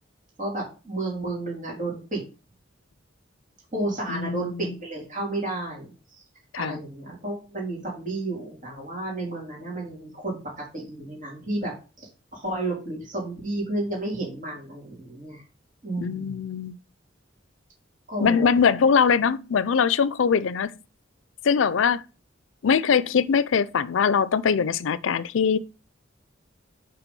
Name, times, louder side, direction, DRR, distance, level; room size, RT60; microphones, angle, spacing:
voice 1, 0.4-2.2 3.7-6.2 6.5-10.4 10.7-11.7 12.0-15.4 15.8-16.4 18.1-18.5, right 2 dB, 45° right, 3.9 m, -32 dB
voice 2, 4.1-4.8 6.5-6.8 16.0-16.8 18.2-20.7 21.4-22.0 22.6-25.6, left 6 dB, 85° left, 0.5 m, -22 dB
6.0 x 4.9 x 5.3 m
head